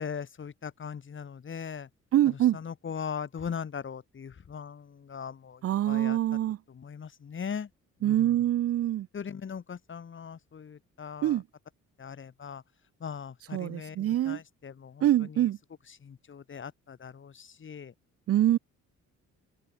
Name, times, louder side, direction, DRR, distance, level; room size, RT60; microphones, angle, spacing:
voice 1, 0.0-1.9 2.3-6.2 6.7-7.7 8.0-8.4 9.1-11.4 12.0-12.6 13.0-15.5 16.0-17.9, left 7 dB, 40° left, 2.2 m, -40 dB
voice 2, 2.1-2.6 5.6-6.6 8.0-9.1 11.2-11.4 13.5-14.4 15.0-15.6 18.3-18.6, right 12 dB, 50° right, 0.5 m, -25 dB
cardioid pair, 90°, 30 cm